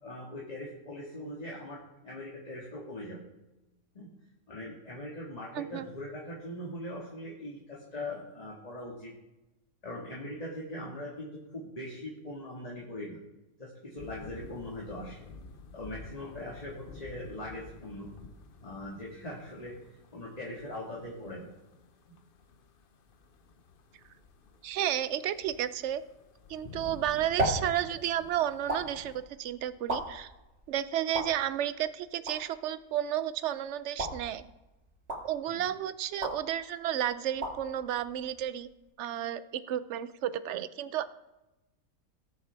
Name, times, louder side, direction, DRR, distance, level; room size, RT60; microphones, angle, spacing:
voice 1, 0.0-3.3 3.9-4.1 4.5-9.1 9.8-13.2 13.6-15.3 15.7-18.1 18.6-19.8 20.1-21.5 35.5-35.7, left 1 dB, 25° left, -4 dB, 1.8 m, -41 dB
voice 2, 5.5-5.9 24.6-26.0 26.5-30.3 30.7-34.4 35.2-38.7 39.0-41.1, right 11 dB, 65° right, 14 dB, 0.8 m, -32 dB
sound 1, 14.0-29.2, left 4 dB, 50° left, 0.8 m, -51 dB
sound 2, 26.7-38.9, right 1 dB, 45° right, 2.2 m, -39 dB
19.0 x 6.5 x 3.4 m, 0.99 s
omnidirectional pair, 1.5 m